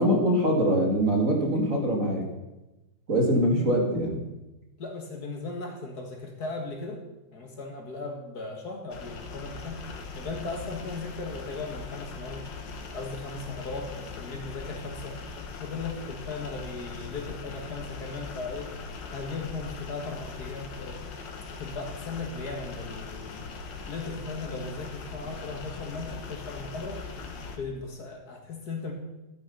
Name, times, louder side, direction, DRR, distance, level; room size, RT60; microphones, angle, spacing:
voice 1, 0.0-2.3 3.1-4.2, equal, 45° right, 1 dB, 2.5 m, -23 dB
voice 2, 4.8-7.0 7.3-9.8 10.1-12.5 12.9-15.2 15.6-18.7 19.1-21.0 21.5-23.5 23.9-27.0 27.6-28.9, left 3 dB, 55° left, 2 dB, 2.3 m, -37 dB
sound 1, 8.9-27.6, left 4 dB, 70° left, 2.0 m, -40 dB
12.5 x 9.4 x 5.6 m, 1.0 s
omnidirectional pair, 2.1 m